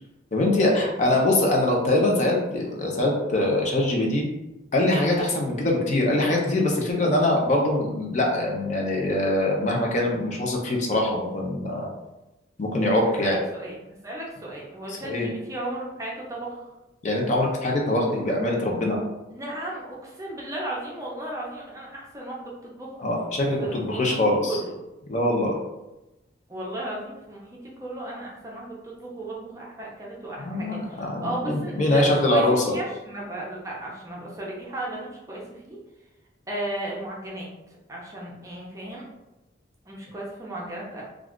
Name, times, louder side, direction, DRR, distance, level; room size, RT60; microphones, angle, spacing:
voice 1, 0.3-4.3 4.7-11.9 12.6-13.4 14.9-15.3 17.0-19.0 23.0-24.6 25.1-25.6 30.4-32.8, left 1 dB, 40° left, -1 dB, 0.5 m, -23 dB
voice 2, 13.2-16.7 19.3-22.9 23.6-24.7 26.5-35.8 36.5-37.5 37.9-39.0 39.9-41.0, right 1 dB, 15° right, -4 dB, 0.5 m, -35 dB
2.4 x 2.3 x 3.5 m, 0.99 s
head